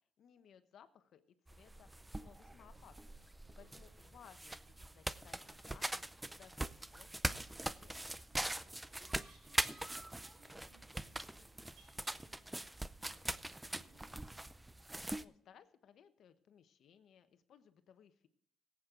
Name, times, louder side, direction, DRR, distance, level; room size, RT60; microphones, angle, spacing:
voice 1, 0.2-1.2 1.5-6.1 6.3-8.1 15.1-18.3, left 8 dB, 70° left, 11 dB, 1.0 m, -63 dB
sound 1, 1.5-15.2, right 1 dB, 10° right, 0.5 m, -42 dB
voice 2, 3.5-3.9 8.3-12.7 13.0-14.3, right 3 dB, 90° right, 2 dB, 4.5 m, -68 dB
18.0 x 8.3 x 3.8 m, 0.67 s
cardioid pair, 90°, 0 cm